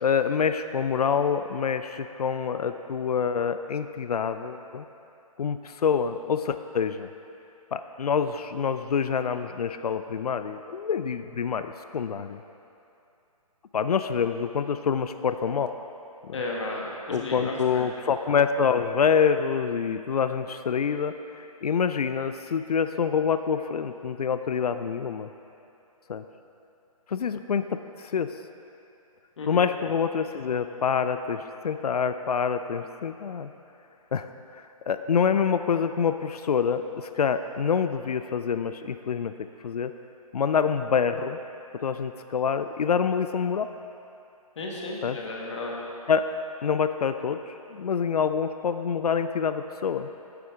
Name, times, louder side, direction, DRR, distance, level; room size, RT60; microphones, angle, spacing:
voice 1, 0.0-4.9 5.4-7.1 7.7-12.4 13.7-15.7 16.2-16.4 17.1-25.3 26.1-26.2 27.1-28.3 29.5-33.5 34.1-39.3 39.6-39.9 40.3-41.4 41.7-43.7 45.0-45.2 46.1-46.3 46.6-50.1, left 6 dB, 85° left, 10 dB, 0.4 m, -26 dB
voice 2, 16.3-17.8 29.4-29.6 44.6-45.7, left 2 dB, 50° left, -2 dB, 1.4 m, -33 dB
9.6 x 8.3 x 3.6 m, 2.8 s
hypercardioid pair, 150°, 19 cm